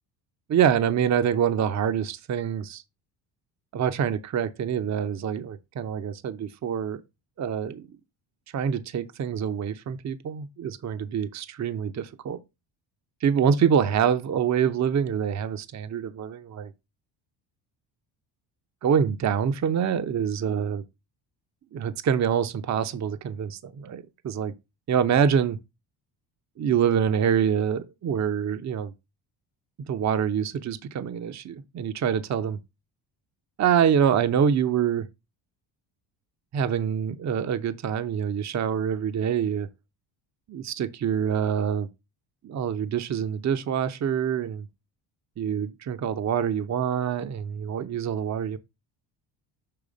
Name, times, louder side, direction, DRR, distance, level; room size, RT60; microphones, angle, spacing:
voice 1, 0.5-2.8 3.7-7.0 7.4-7.9 8.5-12.4 13.2-16.7 18.8-20.8 21.7-24.5 24.9-25.6 26.6-28.9 29.9-32.6 33.6-35.1 36.5-39.7 40.5-41.9 42.4-44.7 45.4-48.6, right 8 dB, 35° right, 0.7 m, -25 dB
6.8 x 3.2 x 5.1 m
cardioid pair, 90°, 47 cm